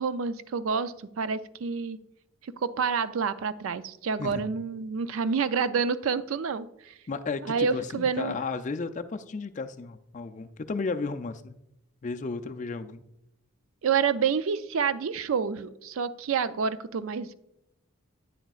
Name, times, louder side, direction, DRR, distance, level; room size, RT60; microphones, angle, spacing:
voice 1, 0.0-2.0 2.4-6.9 7.4-8.3 13.8-17.3, right 6 dB, 75° right, 13 dB, 0.4 m, -28 dB
voice 2, 7.1-11.5 12.0-13.0, left 4 dB, 35° left, 9 dB, 0.4 m, -34 dB
9.2 x 7.6 x 2.4 m, 0.82 s
head